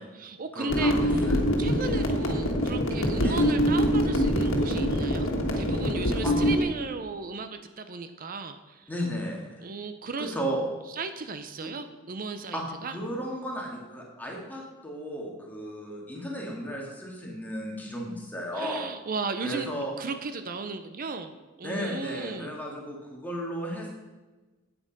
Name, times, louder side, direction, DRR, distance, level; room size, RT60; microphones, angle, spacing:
voice 1, 0.0-0.9 1.6-5.3 5.6-8.9 9.6-10.3 10.9-13.0 18.5-19.7 20.0-21.3 21.6-22.5, right 4 dB, 45° right, 9 dB, 0.6 m, -35 dB
voice 2, 0.5-1.3 3.2-3.4 6.2-6.3 8.9-9.7 10.2-10.6 11.6-11.7 12.5-18.9 19.4-19.9 21.6-23.9, equal, 10° left, -2 dB, 1.9 m, -34 dB
sound 1, 0.7-6.6, equal, 85° left, 1.6 m, -24 dB
8.8 x 8.7 x 5.2 m, 1.2 s
head